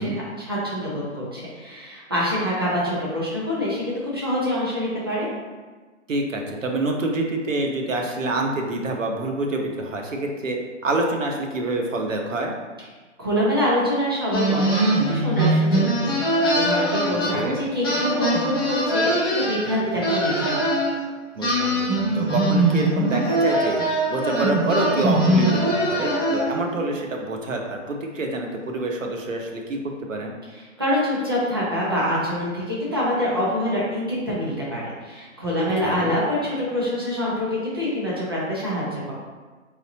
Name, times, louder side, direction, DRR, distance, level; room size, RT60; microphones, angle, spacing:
voice 1, 0.0-5.3 13.2-20.6 30.8-39.1, left 1 dB, 20° right, -7 dB, 0.6 m, -25 dB
voice 2, 6.1-12.5 17.3-17.6 21.3-23.8 24.1-29.8 30.1-30.3 35.8-36.2, right 2 dB, 80° right, 1 dB, 1.0 m, -27 dB
sound 1, 14.3-17.6 17.8-20.9 21.4-26.7, right 1 dB, 20° left, 0.8 m, -22 dB
4.0 x 3.9 x 2.8 m, 1.3 s
hypercardioid pair, 175°, 38 cm